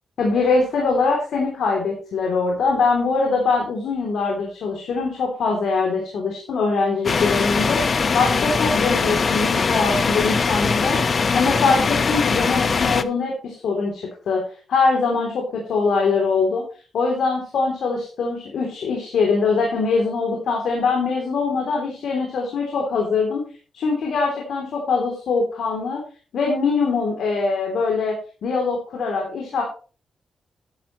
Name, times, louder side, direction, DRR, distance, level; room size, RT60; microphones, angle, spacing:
voice 1, 0.2-7.8 8.1-11.0 11.3-14.4 14.7-16.6 16.9-23.4 23.7-26.0 26.3-28.2 28.4-29.6, left 4 dB, 80° left, 0 dB, 3.2 m, -22 dB
sound 1, 7.0-13.0, left 5 dB, 50° left, 0.7 m, -21 dB
12.0 x 10.5 x 3.2 m, 0.37 s
cardioid pair, 75°, 0 cm